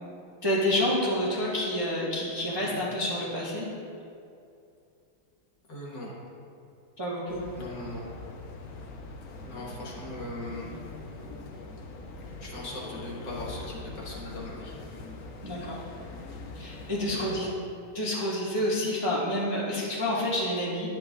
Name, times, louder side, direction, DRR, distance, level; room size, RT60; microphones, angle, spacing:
voice 1, 0.4-3.7 7.0-7.4 15.4-15.8 16.5-17.5 17.9-20.9, left 1 dB, 15° right, -8 dB, 0.9 m, -28 dB
voice 2, 5.7-6.2 7.5-8.0 9.4-10.7 12.4-14.7 17.1-17.5, left 1 dB, 60° left, -4 dB, 1.9 m, -39 dB
sound 1, 7.3-17.4, left 2 dB, 85° left, 0.7 m, -42 dB
10.5 x 8.1 x 2.4 m, 2.5 s
omnidirectional pair, 2.4 m